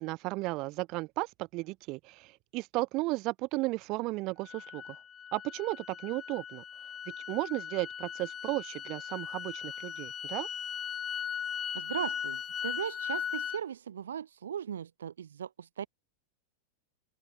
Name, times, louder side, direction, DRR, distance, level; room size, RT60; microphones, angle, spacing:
voice 1, 0.0-5.0 5.3-6.6 7.1-10.5, right 22 dB, 40° right, 1.5 m, -34 dB
sound 1, 4.4-13.6, left 8 dB, 25° left, 0.6 m, -38 dB
voice 2, 11.7-15.9, right 9 dB, 65° right, 0.8 m, -38 dB
figure-of-eight pair, 90°, 0 cm